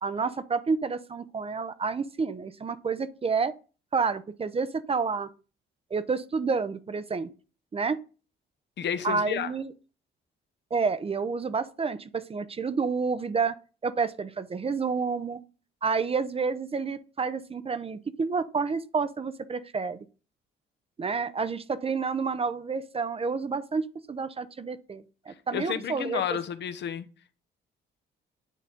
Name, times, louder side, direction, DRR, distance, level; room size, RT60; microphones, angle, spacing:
voice 1, 0.0-3.5 3.9-5.3 5.9-7.3 7.7-8.0 9.0-9.7 10.7-13.6 13.8-15.4 15.8-20.0 21.0-26.2, right 5 dB, 30° right, 0.6 m, -29 dB
voice 2, 8.8-9.5 25.5-27.1, left 9 dB, 65° left, 0.8 m, -31 dB
9.2 x 3.9 x 3.7 m
cardioid pair, 90°, 20 cm